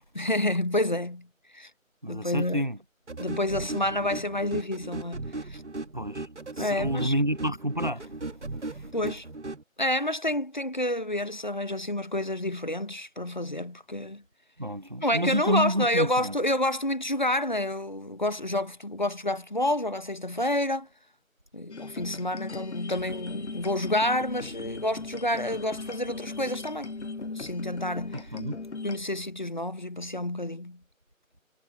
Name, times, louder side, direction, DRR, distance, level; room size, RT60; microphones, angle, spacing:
voice 1, 0.1-1.3 1.5-1.7 2.1-2.6 3.2-5.6 6.6-7.1 8.9-9.3 9.8-14.2 15.0-20.9 21.5-26.9 27.2-28.2 28.8-30.8, left 1 dB, 35° left, 1.1 m, -29 dB
voice 2, 2.0-2.8 5.9-6.3 6.6-8.3 8.7-8.9 14.6-16.4 28.1-28.6, equal, 35° right, 0.8 m, -29 dB
sound 1, 3.1-9.6, right 2 dB, 55° right, 1.6 m, -37 dB
sound 2, 21.7-29.0, left 3 dB, 55° left, 0.6 m, -39 dB
sound 3, 22.9-28.6, right 2 dB, 20° right, 1.6 m, -49 dB
figure-of-eight pair, 165°, 41 cm